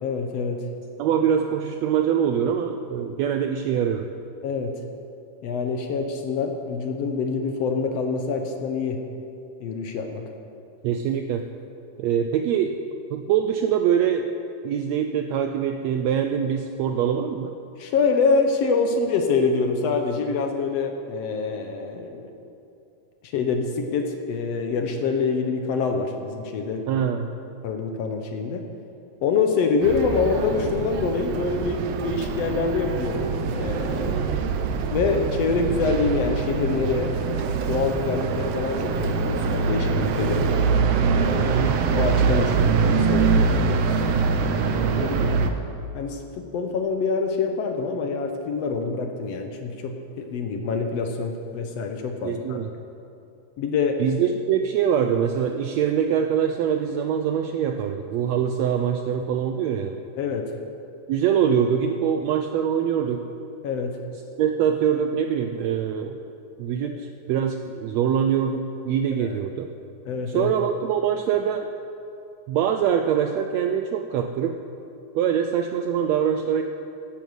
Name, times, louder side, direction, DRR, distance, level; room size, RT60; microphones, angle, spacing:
voice 1, 0.0-0.6 4.4-4.8 5.4-9.0 9.6-10.3 17.8-22.3 23.2-27.0 27.6-28.7 29.2-34.3 34.9-37.1 37.6-40.5 41.2-43.5 44.4-45.4 45.9-52.6 53.6-54.0 60.2-60.5 63.6-64.0 66.8-67.0 69.2-69.4 70.1-70.5, left 4 dB, 65° left, 5 dB, 1.7 m, -26 dB
voice 2, 1.0-4.1 10.8-11.4 12.0-12.8 13.1-14.3 14.6-17.5 26.9-27.3 41.4-41.8 52.2-52.7 54.0-60.0 61.1-63.2 64.4-66.2 66.6-69.7 70.3-71.7 72.5-74.6 75.1-76.6, right 8 dB, 85° right, 6 dB, 1.5 m, -24 dB
sound 1, 29.8-45.5, right 5 dB, 70° right, 1.6 m, -24 dB
11.5 x 10.5 x 7.9 m, 2.7 s
omnidirectional pair, 3.6 m